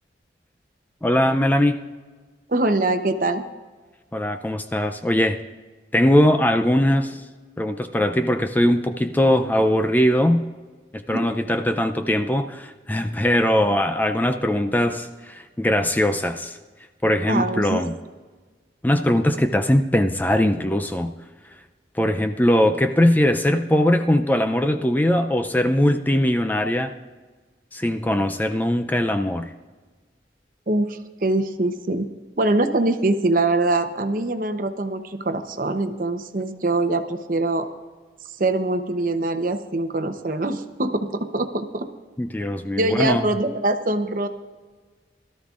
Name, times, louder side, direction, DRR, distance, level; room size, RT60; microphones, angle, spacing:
voice 1, 1.0-1.8 4.1-5.4 5.9-7.2 7.6-10.4 10.9-16.6 17.0-17.9 18.8-21.1 21.9-26.9 27.7-29.5 42.2-43.2, left 1 dB, 10° left, 6 dB, 0.4 m, -20 dB
voice 2, 2.5-3.5 11.1-11.3 17.3-17.8 30.7-37.7 38.4-41.9 42.8-44.3, right 2 dB, 50° right, 8 dB, 0.8 m, -23 dB
21.0 x 13.0 x 2.5 m, 1.4 s
head